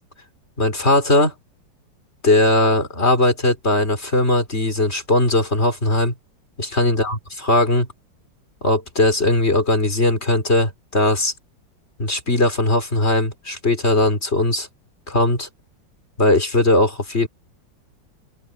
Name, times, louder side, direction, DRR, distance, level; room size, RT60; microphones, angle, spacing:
voice 1, 0.6-1.3 2.2-6.1 6.6-7.9 8.6-11.3 12.0-14.7 15.1-15.5 16.2-17.3, left 1 dB, 35° left, 4.0 m, -19 dB
open air
omnidirectional pair, 2.0 m